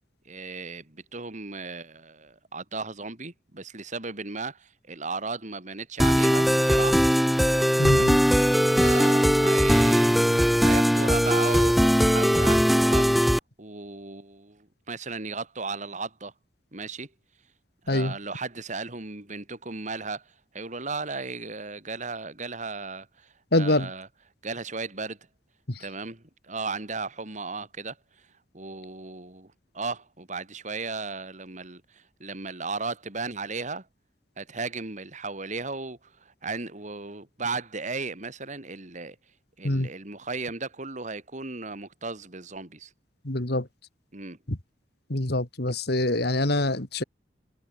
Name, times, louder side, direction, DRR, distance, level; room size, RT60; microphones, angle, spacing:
voice 1, 0.3-7.0 7.8-8.1 8.7-10.2 10.6-13.1 13.6-16.3 16.7-17.1 17.8-24.1 24.4-25.2 25.8-28.0 28.5-33.8 34.4-39.2 39.6-42.9 44.1-44.4, right 4 dB, 40° right, 2.8 m, -35 dB
sound 1, 6.0-13.4, equal, ahead, 0.3 m, -20 dB
voice 2, 7.8-8.2 17.9-18.2 23.5-23.9 25.7-25.8 39.6-39.9 43.2-43.7 44.5-44.6 45.1-47.0, left 1 dB, 60° left, 2.5 m, -25 dB
head